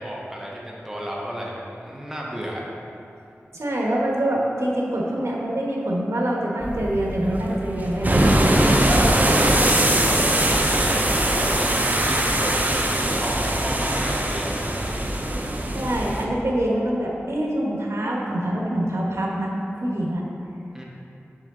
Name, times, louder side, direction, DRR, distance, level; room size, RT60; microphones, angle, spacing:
voice 1, 0.0-2.6 8.6-12.5 13.2-14.6 20.7-20.8, equal, 10° right, -4 dB, 1.0 m, -33 dB
voice 2, 3.5-8.2 15.7-19.5 19.8-20.2, right 1 dB, 70° right, -3 dB, 1.2 m, -25 dB
sound 1, 6.6-16.3, right 1 dB, 35° right, 0.6 m, -21 dB
6.4 x 5.6 x 3.8 m, 2.7 s
wide cardioid pair, 55°, 5 cm